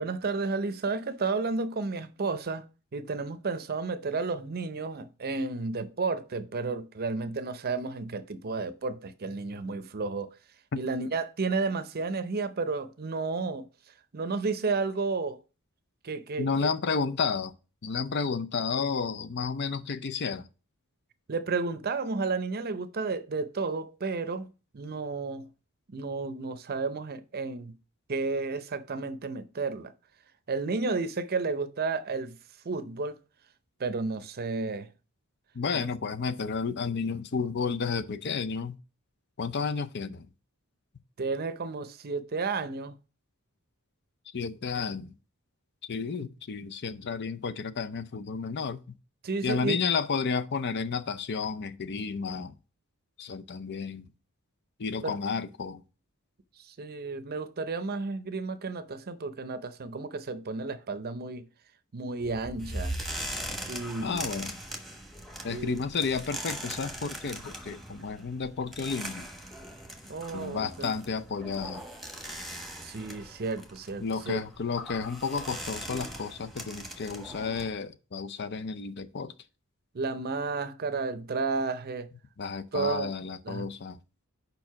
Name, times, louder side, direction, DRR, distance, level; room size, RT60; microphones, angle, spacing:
voice 1, 0.0-2.6 2.9-10.3 10.8-13.7 14.1-15.4 16.0-16.7 21.3-24.5 24.7-25.5 25.9-27.7 28.1-29.9 30.5-32.4 32.6-33.2 33.8-34.9 41.2-42.9 49.2-49.8 55.0-55.2 56.6-61.4 61.9-62.9 63.7-64.3 65.5-65.8 70.1-70.9 72.8-74.4 79.9-82.1 82.7-83.1 83.4-83.7, right 4 dB, 45° right, 0.6 m, -32 dB
voice 2, 16.4-17.5 17.8-20.5 35.5-38.8 39.4-40.3 44.3-45.1 45.8-48.9 49.4-52.5 53.2-54.1 54.8-55.8 64.0-64.6 65.4-69.3 70.3-71.8 74.0-79.3 82.4-84.0, left 5 dB, 55° left, 0.6 m, -32 dB
sound 1, 62.2-77.7, right 1 dB, ahead, 1.2 m, -40 dB
5.3 x 4.6 x 5.7 m
head